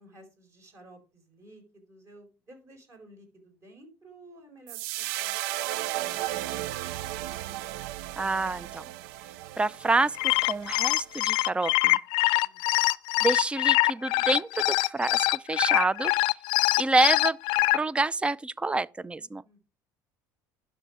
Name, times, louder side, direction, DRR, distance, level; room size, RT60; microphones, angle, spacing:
voice 1, 0.0-6.6 12.4-12.7 19.4-19.7, right 1 dB, 35° right, 4.4 m, -54 dB
sound 1, 4.7-11.1, right 16 dB, 80° right, 0.4 m, -35 dB
voice 2, 8.2-8.9 9.6-12.0 13.2-16.1 16.8-17.4 17.7-19.4, right 2 dB, 15° right, 0.5 m, -27 dB
sound 2, 10.0-17.8, left 22 dB, 75° left, 0.5 m, -24 dB
10.5 x 6.4 x 4.9 m
supercardioid pair, 100°, 8 cm